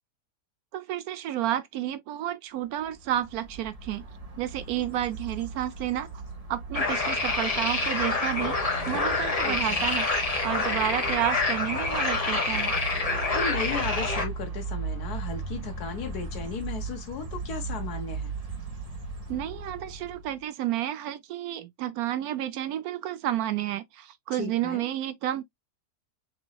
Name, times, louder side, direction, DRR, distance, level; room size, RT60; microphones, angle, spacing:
voice 1, 0.7-4.1 4.4-6.1 6.5-10.1 10.4-12.8 19.3-25.4, right 12 dB, 75° right, 1.0 m, -31 dB
sound 1, 2.8-20.4, right 3 dB, 25° right, 1.2 m, -37 dB
sound 2, 6.7-14.2, left 3 dB, 25° left, 1.1 m, -27 dB
voice 2, 9.4-9.9 13.3-18.3 24.3-24.8, left 5 dB, 75° left, 1.7 m, -35 dB
6.2 x 3.0 x 2.3 m
omnidirectional pair, 1.7 m